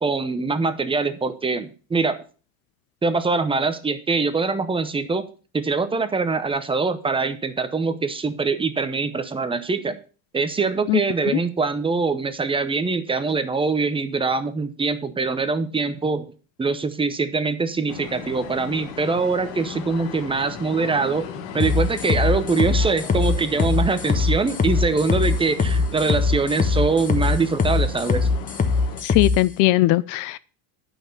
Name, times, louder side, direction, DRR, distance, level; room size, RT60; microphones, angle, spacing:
voice 1, 0.0-2.2 3.0-5.2 5.5-10.0 10.3-16.3 16.6-21.3 21.5-28.3, right 4 dB, 15° right, 0.8 m, -23 dB
sound 1, 17.9-29.0, left 7 dB, 80° left, 1.8 m, -37 dB
sound 2, 21.6-29.4, left 4 dB, 20° left, 1.1 m, -21 dB
voice 2, 29.0-30.4, left 18 dB, 55° left, 0.5 m, -19 dB
9.3 x 6.0 x 6.6 m
supercardioid pair, 135°, 38 cm